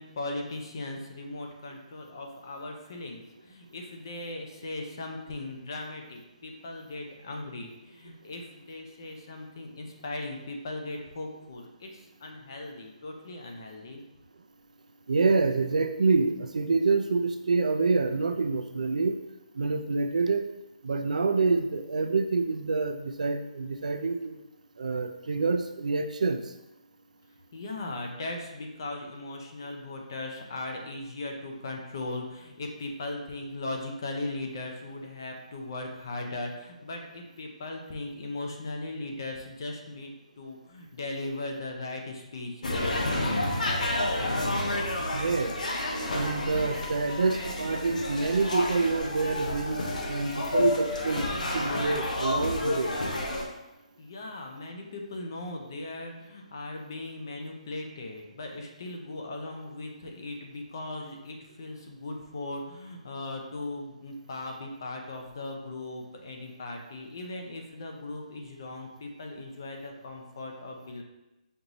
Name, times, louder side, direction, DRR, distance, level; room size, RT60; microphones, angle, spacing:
voice 1, 0.0-14.0 27.5-43.9 54.0-71.0, left 2 dB, 30° left, 2 dB, 0.5 m, -38 dB
voice 2, 15.1-19.1 19.6-20.4 20.8-24.4 24.8-26.4 45.1-45.5 46.1-51.2 51.5-52.9, right 4 dB, 70° right, 7 dB, 0.4 m, -27 dB
sound 1, 42.6-53.4, left 1 dB, 75° left, 0.8 m, -30 dB
5.2 x 2.6 x 3.0 m, 0.97 s
hypercardioid pair, 180°, 4 cm